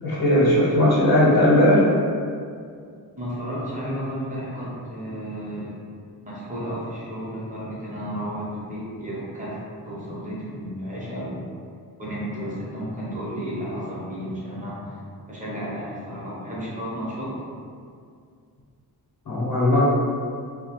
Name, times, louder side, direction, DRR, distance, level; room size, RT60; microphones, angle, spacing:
voice 1, 0.0-1.8 19.3-19.8, left 1 dB, 70° left, -7 dB, 0.8 m, -18 dB
voice 2, 3.2-5.7 6.3-11.4 12.0-15.0 15.3-17.3, equal, 20° right, -8 dB, 0.7 m, -32 dB
2.3 x 2.1 x 2.9 m, 2.2 s
wide cardioid pair, 170°, 38 cm